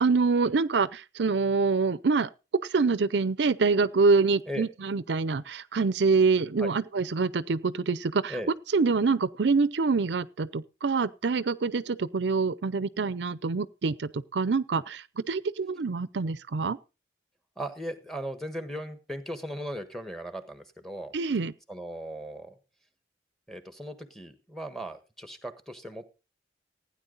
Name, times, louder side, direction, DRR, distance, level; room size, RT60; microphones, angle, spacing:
voice 1, 0.0-2.3 2.7-8.3 8.7-16.8 21.1-21.5, right 4 dB, 75° right, 0.6 m, -25 dB
voice 2, 17.6-21.1 21.7-22.5 23.5-26.1, equal, ahead, 1.4 m, -37 dB
16.0 x 9.6 x 3.9 m
head